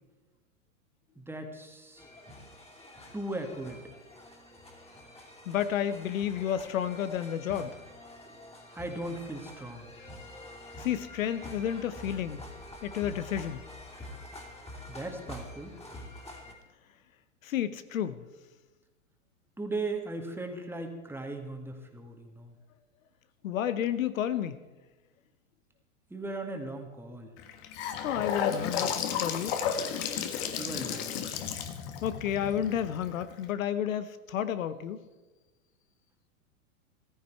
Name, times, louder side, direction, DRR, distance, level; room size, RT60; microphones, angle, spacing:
voice 1, 1.2-2.1 3.1-3.8 8.7-9.9 14.9-15.8 19.6-22.6 26.1-27.3 30.6-31.2, right 2 dB, 5° right, 3 dB, 1.9 m, -38 dB
sound 1, 2.0-16.5, left 1 dB, 15° left, 3.0 m, -47 dB
voice 2, 5.5-7.8 10.8-12.5 12.8-13.6 17.4-18.3 23.4-24.6 28.0-29.6 32.0-35.0, left 10 dB, 75° left, 13 dB, 0.9 m, -31 dB
Gurgling / Sink (filling or washing) / Bathtub (filling or washing), 27.4-33.4, left 8 dB, 50° left, 1.6 m, -33 dB
14.5 x 14.0 x 4.6 m, 1.2 s
hypercardioid pair, 110°, 41 cm